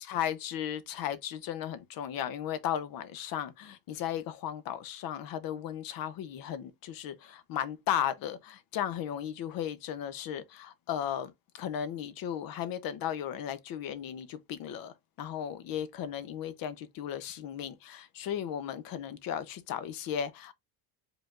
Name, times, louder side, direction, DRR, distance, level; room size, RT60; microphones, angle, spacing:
voice 1, 0.0-11.3 11.6-14.9 15.2-20.5, left 10 dB, 60° left, 0.8 m, -35 dB
5.0 x 3.8 x 2.5 m
cardioid pair, 150°, 40 cm